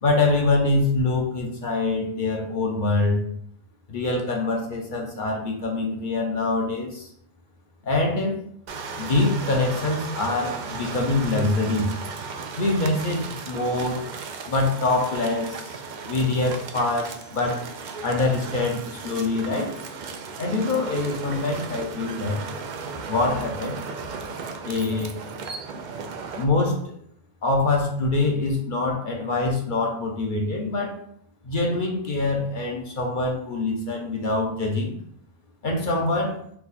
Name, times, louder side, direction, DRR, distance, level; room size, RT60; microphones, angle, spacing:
voice 1, 0.0-3.2 3.9-7.1 7.8-8.4 9.0-11.9 12.6-14.1 14.5-15.8 16.1-17.6 18.0-19.7 20.4-22.4 22.9-23.8 24.6-25.2 26.3-26.9 27.4-31.0 31.4-34.9 35.6-36.4, left 2 dB, 45° left, 0 dB, 0.8 m, -24 dB
sound 1, 8.7-26.4, right 5 dB, 85° right, 0.4 m, -36 dB
4.5 x 2.3 x 4.1 m, 0.66 s
omnidirectional pair, 1.4 m